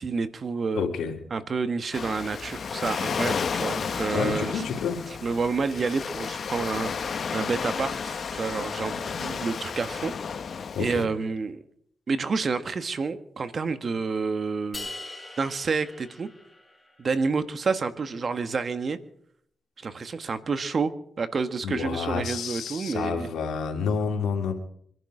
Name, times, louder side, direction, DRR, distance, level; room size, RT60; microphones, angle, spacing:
voice 1, 0.0-0.9 1.3-4.6 5.2-10.1 10.8-11.6 12.1-14.9 15.4-16.3 17.0-19.0 19.8-20.9 21.2-23.3, right 4 dB, 50° right, 11 dB, 1.4 m, -29 dB
voice 2, 0.7-1.2 4.1-5.1 10.7-11.0 21.6-24.5, left 6 dB, 85° left, 2 dB, 2.9 m, -29 dB
Waves surf, 1.9-11.0, left 6 dB, 60° left, 1.1 m, -32 dB
sound 1, 14.7-17.0, left 2 dB, 10° left, 4.9 m, -41 dB
25.5 x 11.0 x 4.9 m, 0.67 s
cardioid pair, 75°, 0 cm